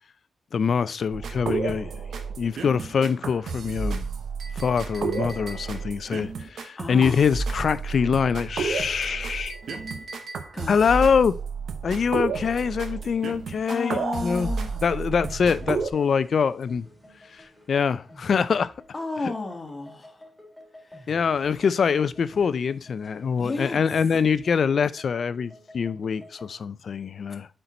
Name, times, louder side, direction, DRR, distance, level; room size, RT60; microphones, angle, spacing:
voice 1, 0.5-2.0 2.4-4.1 4.6-9.5 10.7-11.4 11.8-14.5 14.8-16.9 17.3-18.7 21.1-27.5, left 6 dB, 60° left, 0.4 m, -24 dB
sound 1, 1.1-15.9, right 5 dB, 80° right, 0.9 m, -31 dB
Chink clink, 4.4-6.0 9.5-10.8, right 1 dB, 65° right, 2.1 m, -43 dB
voice 2, 6.8-7.2 10.5-11.0 13.7-14.8 18.9-20.2 20.9-21.1 23.4-23.8, left 2 dB, 25° left, 1.5 m, -33 dB
sound 2, 15.3-26.6, left 1 dB, 5° left, 3.0 m, -50 dB
8.0 x 4.5 x 3.9 m
wide cardioid pair, 105°, 0 cm